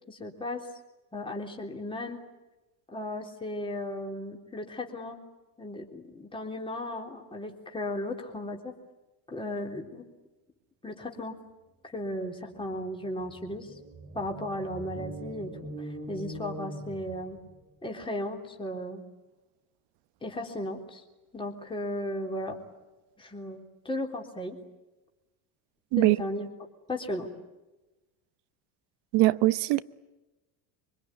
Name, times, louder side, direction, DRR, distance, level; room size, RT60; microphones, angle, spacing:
voice 1, 0.1-0.6 1.1-2.2 2.9-5.2 5.6-8.7 9.3-10.0 10.8-11.4 11.9-13.7 14.1-17.4 17.8-19.0 20.2-21.0 21.3-22.6 23.2-24.6 26.0-26.5 26.9-27.3, left 1 dB, 10° left, 3.6 m, -35 dB
sound 1, 12.2-12.3 12.6-17.6, right 1 dB, 25° right, 3.1 m, -42 dB
voice 2, 29.1-29.8, right 19 dB, 60° right, 1.1 m, -22 dB
24.5 x 24.5 x 9.7 m
cardioid pair, 135°, 46 cm